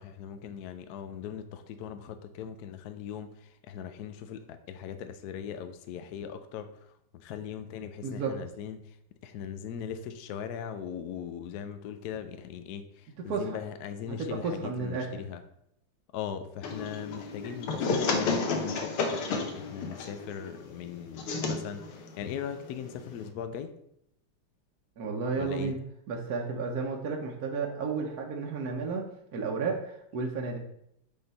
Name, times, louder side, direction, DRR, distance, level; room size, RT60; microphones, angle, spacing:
voice 1, 0.0-9.0 9.2-15.4 16.1-23.7 25.4-25.7, left 8 dB, 75° left, 9 dB, 0.9 m, -39 dB
voice 2, 8.0-8.4 13.3-13.5 14.1-15.1 25.0-25.8 26.1-30.6, right 4 dB, 55° right, 0 dB, 1.2 m, -32 dB
sound 1, 16.6-23.3, left 4 dB, 90° left, 1.9 m, -32 dB
8.6 x 3.9 x 4.1 m, 0.77 s
omnidirectional pair, 2.3 m